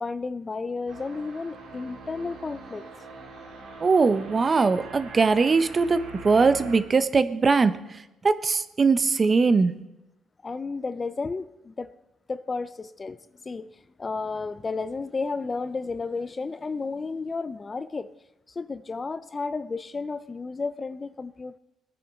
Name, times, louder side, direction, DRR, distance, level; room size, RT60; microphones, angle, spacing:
voice 1, 0.0-2.9 10.4-11.9 12.3-13.2 13.5-13.7 14.0-18.1 18.6-21.6, left 4 dB, 30° left, 13 dB, 0.5 m, -32 dB
sound 1, 0.9-6.8, right 4 dB, 85° right, 2.5 m, -43 dB
voice 2, 3.8-7.8 8.2-9.7, right 4 dB, 35° right, 12 dB, 0.7 m, -21 dB
18.5 x 10.0 x 3.6 m, 0.94 s
cardioid pair, 90°, 0 cm